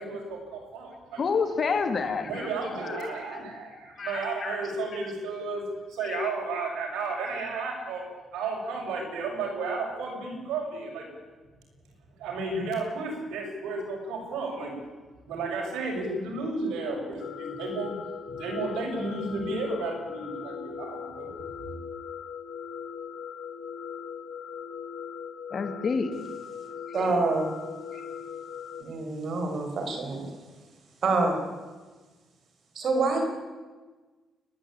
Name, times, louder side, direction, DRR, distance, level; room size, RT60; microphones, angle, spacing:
voice 1, 0.0-1.3 2.2-8.0 8.3-11.1 12.2-14.7 15.2-18.0 18.2-21.3 21.6-21.7, right 3 dB, 85° right, 0 dB, 6.5 m, -33 dB
voice 2, 1.2-2.5 2.8-3.1 4.0-4.6 6.0-6.3 25.5-26.1, left 5 dB, 45° left, 7 dB, 2.7 m, -29 dB
sound 1, 17.2-28.8, left 7 dB, 85° left, 1.6 m, -39 dB
voice 3, 26.9-27.5 27.9-28.0 28.8-30.3 31.0-31.4 32.8-33.2, right 3 dB, 55° right, 4 dB, 5.5 m, -26 dB
29.5 x 10.5 x 8.7 m, 1.3 s
cardioid pair, 90°, 0 cm